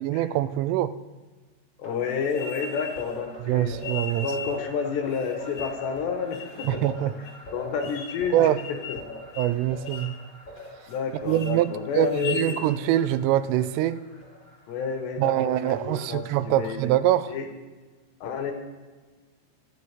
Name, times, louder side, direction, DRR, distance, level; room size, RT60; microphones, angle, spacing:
voice 1, 0.0-0.9 3.5-4.3 6.7-7.1 8.3-8.6 9.4-10.1 11.3-14.0 15.2-17.3, right 12 dB, 85° right, 14 dB, 3.2 m, -24 dB
voice 2, 1.8-3.8 4.2-7.3 7.5-9.0 10.9-12.7 14.7-16.9 17.3-17.5 18.2-18.5, left 6 dB, 70° left, 4 dB, 3.3 m, -30 dB
sound 1, 1.8-16.6, left 1 dB, 15° left, 5.0 m, -43 dB
sound 2, 2.3-3.1 3.8-4.6 5.1-5.9 6.3-6.8 7.3-7.4 7.8-8.3 8.6-9.1 9.3-9.6 9.9-10.2 10.6-11.0 11.3-11.5 12.0-12.6, left 5 dB, 50° left, 3.3 m, -38 dB
26.5 x 11.0 x 3.6 m, 1.4 s
omnidirectional pair, 5.6 m